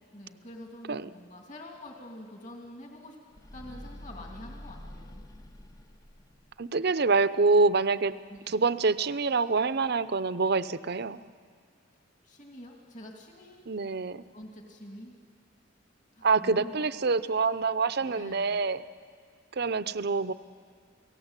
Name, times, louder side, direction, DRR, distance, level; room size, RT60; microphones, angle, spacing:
voice 1, 0.1-3.2 3.5-5.2 8.3-8.7 12.2-13.8 14.3-15.1 16.1-16.9 18.1-18.6, left 1 dB, 40° left, 1 dB, 2.7 m, -46 dB
sound 1, 3.3-6.6, left 1 dB, 20° left, 0.6 m, -46 dB
voice 2, 6.6-8.1 8.5-11.2 13.7-14.2 16.2-18.8 19.6-20.3, right 4 dB, 55° right, 14 dB, 0.7 m, -26 dB
30.0 x 17.5 x 8.2 m, 2.1 s
head